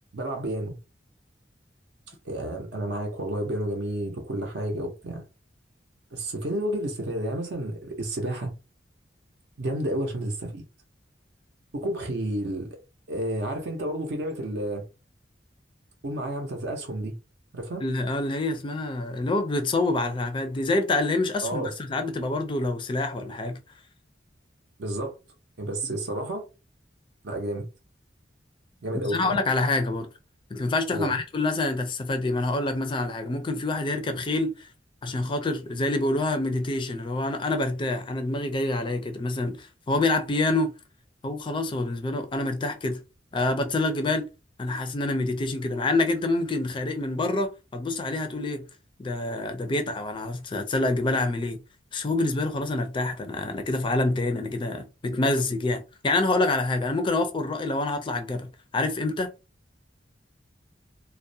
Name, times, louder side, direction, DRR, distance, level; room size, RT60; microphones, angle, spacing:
voice 1, 0.1-0.8 2.2-5.2 6.1-8.5 9.6-10.6 11.7-12.8 13.1-14.8 16.0-17.2 17.5-17.8 21.4-21.7 24.8-25.2 25.6-26.4 27.2-27.7 28.8-29.4 30.9-31.1, right 1 dB, 70° right, 0.6 m, -30 dB
voice 2, 17.8-23.6 28.9-30.1 30.5-34.6 35.0-40.7 41.2-43.0 43.3-44.3 44.6-48.7 49.0-51.6 51.9-59.3, left 2 dB, 25° left, 0.4 m, -27 dB
2.3 x 2.0 x 2.6 m
head